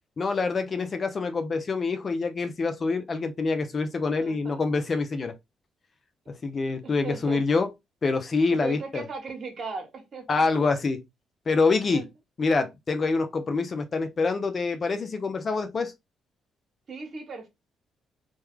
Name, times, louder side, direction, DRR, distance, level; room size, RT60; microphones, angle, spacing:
voice 1, 0.2-5.3 6.3-7.7 8.0-9.0 10.3-11.0 11.5-12.0 12.4-15.9, left 4 dB, 40° left, 0.6 m, -26 dB
voice 2, 4.2-4.7 6.8-7.4 8.5-10.4 11.9-12.0 16.9-17.5, right 4 dB, 50° right, 1.3 m, -37 dB
3.1 x 2.2 x 3.5 m
cardioid pair, 90°, 0 cm